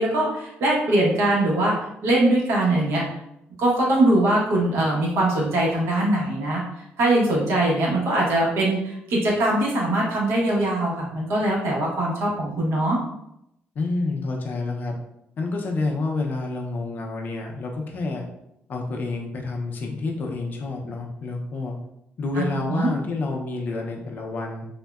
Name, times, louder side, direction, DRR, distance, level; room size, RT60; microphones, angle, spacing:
voice 1, 0.0-1.7 2.0-3.0 3.6-6.6 7.0-13.0 22.4-22.9, right 1 dB, 80° right, -3 dB, 0.9 m, -22 dB
voice 2, 13.7-15.0 15.4-18.2 18.7-21.8 22.2-24.7, left 3 dB, 45° left, 1 dB, 0.4 m, -28 dB
3.5 x 2.1 x 2.3 m, 0.80 s
cardioid pair, 165°, 4 cm